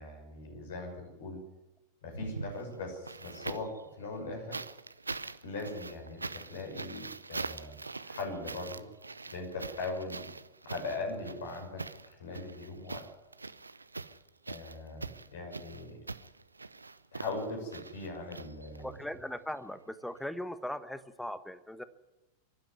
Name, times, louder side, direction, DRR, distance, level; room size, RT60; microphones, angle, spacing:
voice 1, 0.0-1.4 2.0-4.6 5.4-8.9 9.3-10.3 10.6-11.8 12.1-13.1 14.5-16.0 17.1-18.9, left 2 dB, 60° left, 3 dB, 6.0 m, -40 dB
sound 1, 2.1-3.8 4.5-19.0 20.2-20.3, right 3 dB, 80° right, 0.7 m, -43 dB
voice 2, 18.8-21.8, left 1 dB, ahead, 14 dB, 1.2 m, -39 dB
24.5 x 12.0 x 9.5 m, 1.0 s
figure-of-eight pair, 90°, 0 cm